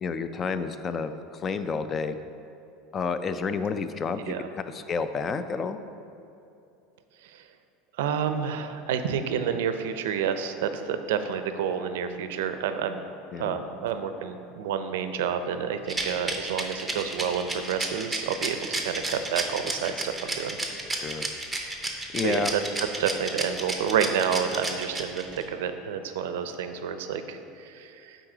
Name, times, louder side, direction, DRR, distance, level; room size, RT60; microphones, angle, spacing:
voice 1, 0.0-2.2 2.9-5.8 13.3-13.6 20.9-21.3 22.1-22.6, left 5 dB, 25° left, 11 dB, 0.3 m, -30 dB
voice 2, 8.0-13.0 13.4-20.6 22.2-22.6 23.0-28.2, right 7 dB, 90° right, 9 dB, 0.4 m, -29 dB
Rattle, 15.9-25.4, right 2 dB, 5° right, 0.7 m, -31 dB
9.1 x 3.9 x 3.8 m, 2.7 s
supercardioid pair, 140°, 0 cm